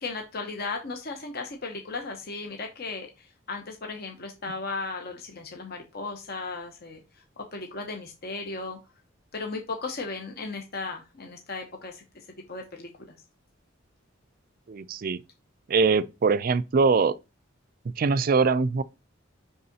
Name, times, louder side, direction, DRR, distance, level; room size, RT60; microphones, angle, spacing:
voice 1, 0.0-7.0 7.5-8.8 9.3-12.2 12.5-12.9, left 3 dB, 50° left, 0.9 m, -36 dB
voice 2, 14.7-15.2 15.7-17.2 18.0-18.8, right 4 dB, 45° right, 0.4 m, -22 dB
9.4 x 3.7 x 2.8 m
head